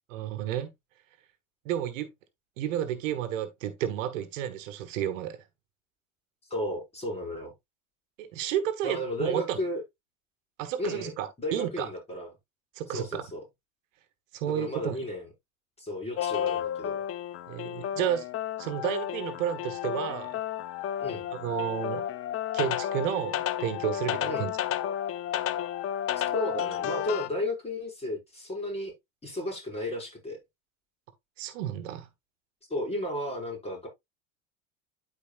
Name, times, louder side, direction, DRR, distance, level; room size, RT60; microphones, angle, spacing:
voice 1, 0.1-0.7 1.6-2.1 2.6-5.4 8.2-9.6 10.6-11.9 12.7-13.2 14.3-15.0 17.5-18.2 18.6-20.4 21.3-22.0 22.5-24.6 31.4-32.1, right 10 dB, 70° right, 1.4 m, -31 dB
voice 2, 6.5-7.5 8.8-9.8 10.8-12.3 12.9-13.4 14.4-15.3 15.8-17.0 21.0-21.3 24.3-24.5 26.3-28.9 29.2-30.4 32.7-33.9, left 1 dB, 15° left, 5.1 m, -33 dB
sound 1, 16.2-27.3, left 10 dB, 35° left, 0.7 m, -32 dB
12.0 x 4.8 x 2.4 m
hypercardioid pair, 90°, 39 cm